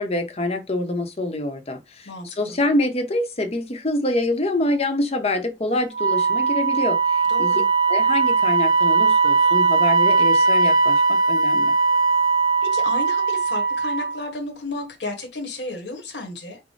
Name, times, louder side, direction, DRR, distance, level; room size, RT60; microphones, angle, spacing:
voice 1, 0.0-2.1 2.4-7.0 7.4-7.5 7.9-11.7, left 1 dB, 35° left, 0.8 m, -25 dB
voice 2, 2.0-2.6 7.3-7.7 12.7-16.6, left 2 dB, 75° left, 1.4 m, -33 dB
Wind instrument woodwind instrument, 5.9-14.2, right 4 dB, 25° right, 0.7 m, -19 dB
6.2 x 2.1 x 3.3 m
head